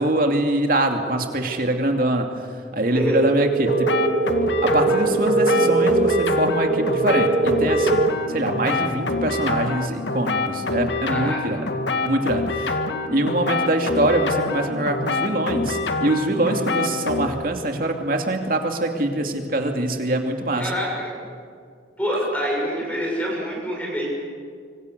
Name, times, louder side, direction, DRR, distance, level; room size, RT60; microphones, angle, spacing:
voice 1, 0.0-2.3 2.7-3.9 4.6-11.7 12.0-12.8 13.1-20.6, right 1 dB, 50° right, 4 dB, 2.7 m, -23 dB
voice 2, 2.9-3.2 11.1-11.4 20.5-21.0 22.0-24.1, equal, 10° left, -2 dB, 6.9 m, -26 dB
sound 1, 2.9-7.9, right 3 dB, 20° right, 3.9 m, -21 dB
sound 2, 3.7-17.3, left 3 dB, 80° left, 2.1 m, -26 dB
26.0 x 25.5 x 6.9 m, 2.3 s
head